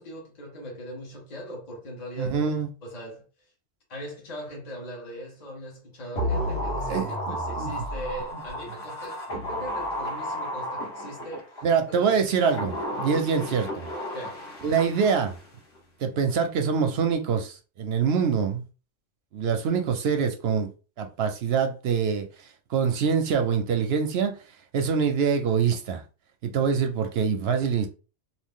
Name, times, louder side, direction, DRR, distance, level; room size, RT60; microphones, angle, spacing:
voice 1, 0.0-3.2 3.9-12.2 14.1-14.4, equal, 35° left, 1.0 m, -40 dB
voice 2, 2.2-2.7 6.9-7.7 11.6-13.9 14.6-15.4 16.0-18.6 19.3-20.7 21.0-22.3 22.7-24.3 24.7-26.0 26.4-27.9, right 6 dB, 65° right, 0.7 m, -25 dB
sound 1, 6.2-11.6 12.2-15.5 15.8-15.9, equal, 60° left, 1.3 m, -32 dB
2.6 x 2.6 x 3.6 m
omnidirectional pair, 1.3 m